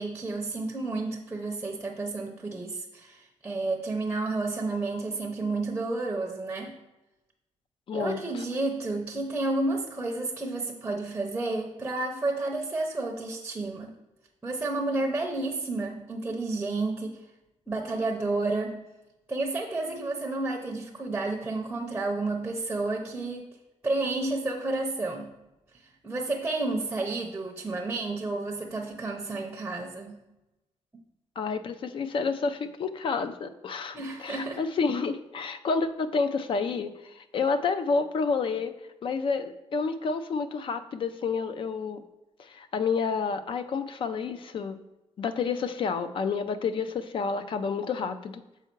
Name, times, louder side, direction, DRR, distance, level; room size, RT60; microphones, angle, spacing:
voice 1, 0.0-6.8 7.9-13.9 14.4-17.2 17.7-18.8 19.3-23.4 23.8-25.3 25.7-30.2 33.9-34.6, right 2 dB, 10° right, 1 dB, 0.6 m, -31 dB
voice 2, 7.9-8.4 31.4-38.7 39.0-42.0 42.4-44.8 45.2-48.4, left 5 dB, 45° left, 11 dB, 0.5 m, -29 dB
6.9 x 4.6 x 4.5 m, 1.0 s
wide cardioid pair, 175°, 12 cm